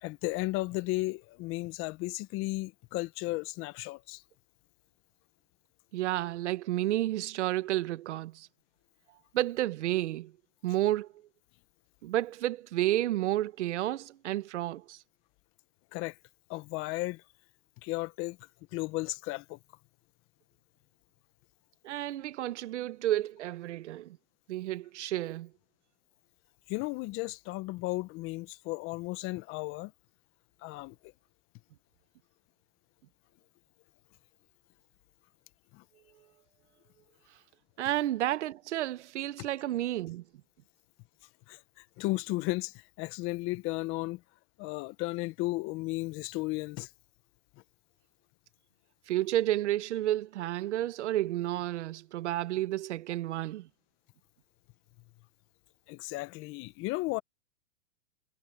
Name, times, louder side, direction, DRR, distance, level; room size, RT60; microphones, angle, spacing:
voice 1, 0.0-4.2 15.9-16.2 16.5-17.2 17.8-19.6 26.7-29.9 30.6-31.1 35.7-35.8 39.4-39.5 41.5-44.2 44.6-46.9 55.9-57.2, left 21 dB, 35° left, 1.2 m, -34 dB
voice 2, 5.9-8.5 9.3-10.3 10.6-11.1 12.0-15.0 21.8-24.2 24.5-25.5 37.8-40.2 49.1-53.7, right 14 dB, 65° right, 1.6 m, -31 dB
hypercardioid pair, 135°, 38 cm